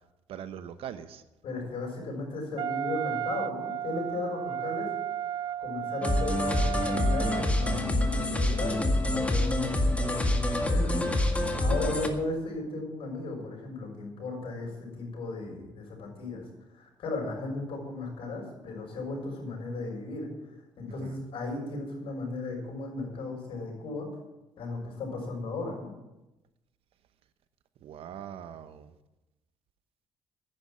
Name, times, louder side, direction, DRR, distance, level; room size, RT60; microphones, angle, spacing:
voice 1, 0.3-1.2 21.0-21.2 27.8-28.9, right 9 dB, 70° right, 11 dB, 1.0 m, -41 dB
voice 2, 1.4-4.9 5.3-11.0 11.3-16.4 16.7-20.3 20.8-24.1 24.6-25.9, left 3 dB, 65° left, -1 dB, 6.3 m, -36 dB
Wind instrument woodwind instrument, 2.6-7.8, right 10 dB, 55° right, 0.6 m, -34 dB
sound 1, 6.0-12.1, left 1 dB, 15° left, 1.9 m, -26 dB
10.5 x 9.9 x 8.8 m, 1.0 s
cardioid pair, 90°, 10 cm